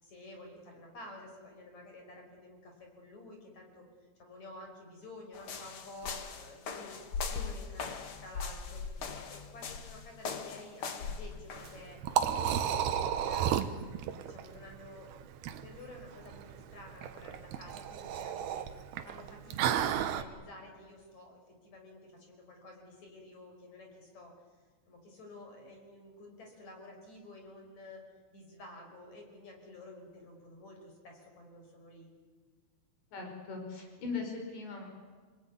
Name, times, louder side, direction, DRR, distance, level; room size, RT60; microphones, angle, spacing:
voice 1, 0.0-3.9 4.2-7.9 8.2-12.0 12.3-13.8 14.2-15.3 15.6-18.7 19.0-24.3 24.9-28.0 28.3-32.1, left 2 dB, 40° left, 3 dB, 6.3 m, -51 dB
sound 1, 5.3-11.8, left 5 dB, 85° left, 1.2 m, -40 dB
Liquid, 11.5-20.2, right 9 dB, 70° right, 2.8 m, -33 dB
voice 2, 33.1-34.9, left 4 dB, 70° left, 3 dB, 7.4 m, -39 dB
28.5 x 19.5 x 9.7 m, 1.5 s
omnidirectional pair, 5.2 m